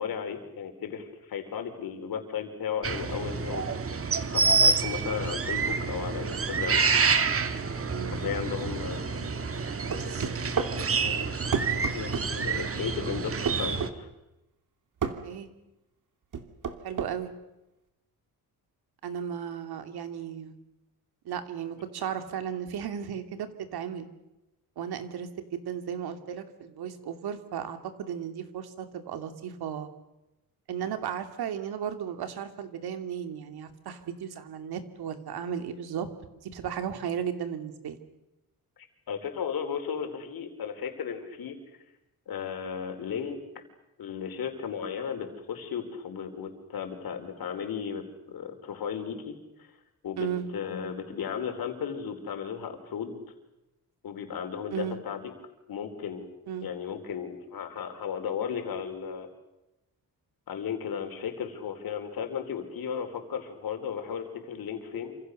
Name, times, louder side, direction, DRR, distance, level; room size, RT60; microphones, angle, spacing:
voice 1, 0.0-3.7 4.0-6.8 8.1-9.4 10.8-14.1 38.8-41.8 42.3-43.4 44.0-49.8 50.0-50.3 50.5-53.2 54.0-55.3 55.7-56.3 56.6-59.3 60.5-65.1, left 7 dB, 70° left, 6 dB, 4.6 m, -35 dB
sound 1, 2.8-13.9, right 5 dB, 35° right, 1.9 m, -28 dB
sound 2, 9.9-10.7 11.5-12.3 13.5-13.9 15.0-15.2 16.3-17.1, right 6 dB, 55° right, 2.8 m, -30 dB
voice 2, 16.8-17.3 19.0-20.5 21.2-24.1 24.8-29.9 30.7-36.1 36.4-38.0 50.2-50.5 54.7-55.0 56.5-56.7, right 8 dB, 85° right, 8 dB, 2.8 m, -35 dB
28.0 x 26.5 x 6.7 m, 0.95 s
cardioid pair, 120°, 37 cm